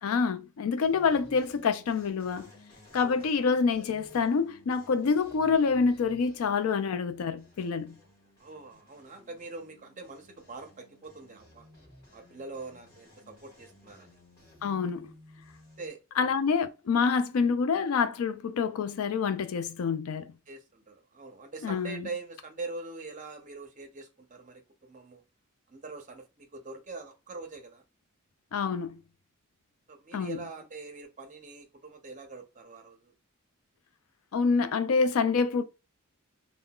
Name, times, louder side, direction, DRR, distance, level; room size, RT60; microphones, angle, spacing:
voice 1, 0.0-2.5 2.9-8.0 14.6-15.1 16.2-20.3 21.6-22.1 28.5-29.0 30.1-30.4 34.3-35.6, left 5 dB, 80° left, 0.4 m, -27 dB
sound 1, 0.8-15.9, left 1 dB, 20° left, 1.5 m, -56 dB
voice 2, 2.9-3.3 8.4-11.7 12.1-14.2 15.8-16.3 20.5-25.2 25.7-27.8 29.9-33.1, right 3 dB, 35° right, 0.6 m, -43 dB
3.6 x 2.1 x 2.2 m
head